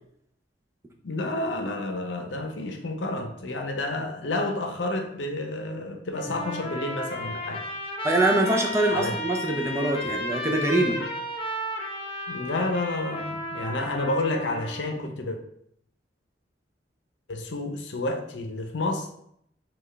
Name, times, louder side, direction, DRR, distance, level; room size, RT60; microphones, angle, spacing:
voice 1, 1.0-7.7 8.9-9.1 12.3-15.4 17.3-19.1, left 2 dB, 85° left, 4 dB, 0.7 m, -30 dB
Trumpet, 6.1-14.9, equal, 30° left, 0.6 m, -33 dB
voice 2, 8.0-11.0, right 1 dB, 15° right, 1 dB, 0.6 m, -24 dB
5.7 x 2.4 x 3.2 m, 0.71 s
head